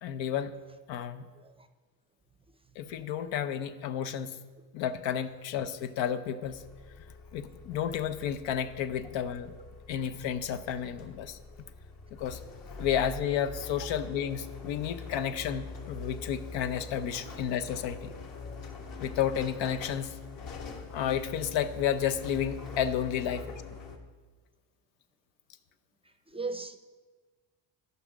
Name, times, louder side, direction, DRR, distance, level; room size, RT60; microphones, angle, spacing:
voice 1, 0.0-0.5 0.9-1.2 2.8-4.4 4.7-6.6 7.3-9.5 9.9-11.4 12.2-12.4 12.8-18.1 19.0-20.1 20.9-23.4, left 9 dB, 85° left, 0.8 m, -31 dB
voice 2, 1.3-1.7 23.4-23.5 26.0-26.8, right 3 dB, 15° right, 0.5 m, -38 dB
sound 1, 6.4-24.0, left 4 dB, 50° left, 1.5 m, -44 dB
14.0 x 5.6 x 6.1 m
cardioid pair, 120°, 44 cm